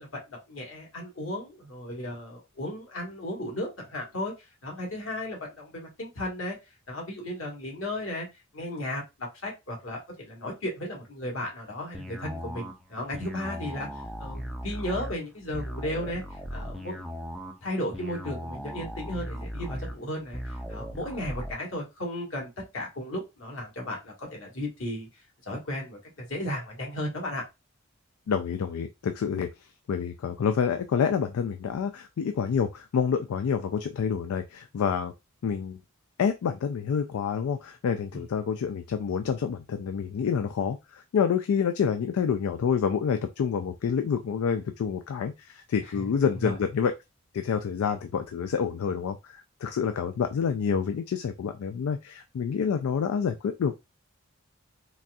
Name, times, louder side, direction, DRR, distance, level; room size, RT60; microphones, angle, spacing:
voice 1, 0.0-4.3 4.6-6.6 6.9-8.3 8.5-13.9 14.2-17.0 17.6-25.1 25.4-27.4 38.1-38.3 45.9-46.5, left 1 dB, 65° left, -1 dB, 1.4 m, -35 dB
sound 1, 11.9-21.5, equal, ahead, 0.4 m, -38 dB
voice 2, 28.3-29.5 29.9-35.1 35.4-35.8 36.2-46.9 47.3-53.8, left 6 dB, 85° left, 7 dB, 0.3 m, -28 dB
4.0 x 2.5 x 2.3 m, 0.24 s
head